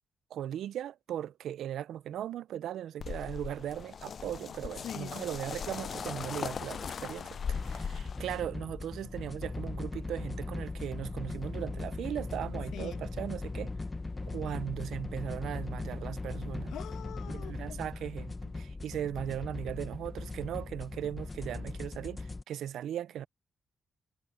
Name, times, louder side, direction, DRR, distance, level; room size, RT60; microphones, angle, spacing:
voice 1, 0.3-13.7 14.3-16.7 17.3-23.3, right 10 dB, 75° right, 0.5 m, -38 dB
sound 1, 3.0-8.4, left 6 dB, 40° left, 0.3 m, -39 dB
voice 2, 4.8-5.3 12.7-13.0 16.7-17.8, left 10 dB, 90° left, 1.5 m, -43 dB
sound 2, 7.5-22.4, left 3 dB, 15° left, 0.9 m, -39 dB
cardioid pair, 155°, 0 cm